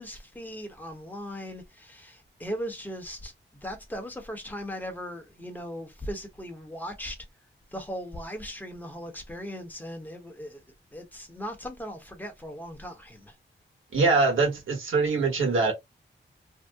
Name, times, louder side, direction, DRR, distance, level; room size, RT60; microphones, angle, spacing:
voice 1, 0.0-3.3 3.6-7.2 7.7-10.6 10.9-13.3, equal, 10° left, 0.9 m, -38 dB
voice 2, 13.9-15.7, right 3 dB, 85° right, 1.2 m, -23 dB
2.7 x 2.0 x 3.4 m
wide cardioid pair, 120°, 20 cm